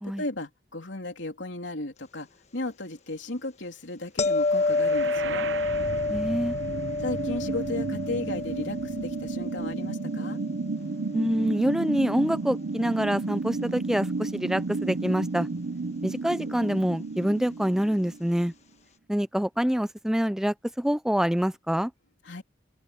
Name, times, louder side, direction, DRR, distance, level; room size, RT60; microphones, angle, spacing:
voice 1, 0.2-2.3 2.5-5.5 7.0-10.4 22.2-22.4, left 2 dB, 90° left, 3.3 m, -35 dB
sound 1, 4.2-11.2 16.4-16.6, left 3 dB, 40° left, 1.3 m, -29 dB
sound 2, 4.5-18.5, right 3 dB, 80° right, 0.7 m, -33 dB
voice 2, 6.1-6.6 11.1-15.5 16.0-18.5 19.1-21.9, equal, 5° right, 0.4 m, -26 dB
open air
head